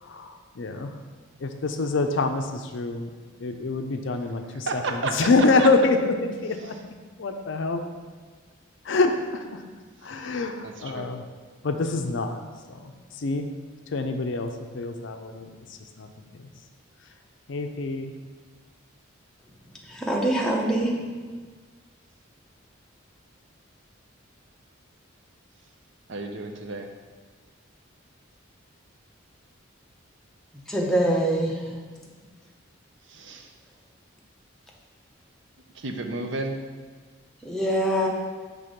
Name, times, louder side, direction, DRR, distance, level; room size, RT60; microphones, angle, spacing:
voice 1, 0.0-0.9 1.4-3.1 3.4-6.8 7.2-7.8 8.9-9.5 10.0-11.2 11.6-12.4 12.8-12.9 13.2-13.5 13.9-15.5 16.0-16.1 16.4-16.5 17.5-18.1, left 3 dB, 60° left, 6 dB, 0.5 m, -26 dB
voice 2, 4.5-5.2 5.6-5.7 10.6-11.1 26.1-26.9 33.1-33.5 35.8-36.5, right 3 dB, 60° right, 4 dB, 0.6 m, -32 dB
voice 3, 19.9-20.9 30.7-31.6 37.4-38.1, right 1 dB, 5° left, -2 dB, 0.7 m, -23 dB
5.9 x 3.5 x 5.1 m, 1.5 s
head